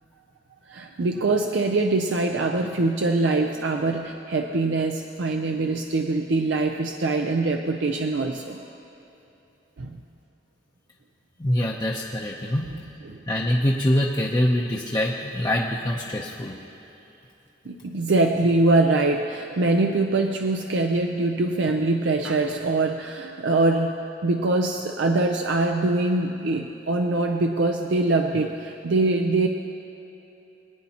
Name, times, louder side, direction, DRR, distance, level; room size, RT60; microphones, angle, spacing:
voice 1, 0.7-8.6 9.8-10.0 13.0-13.2 17.7-29.5, right 2 dB, 75° right, 3 dB, 0.5 m, -23 dB
voice 2, 11.4-12.7 13.3-16.6, left 1 dB, 25° left, -3 dB, 0.6 m, -24 dB
23.0 x 9.3 x 2.9 m, 2.9 s
head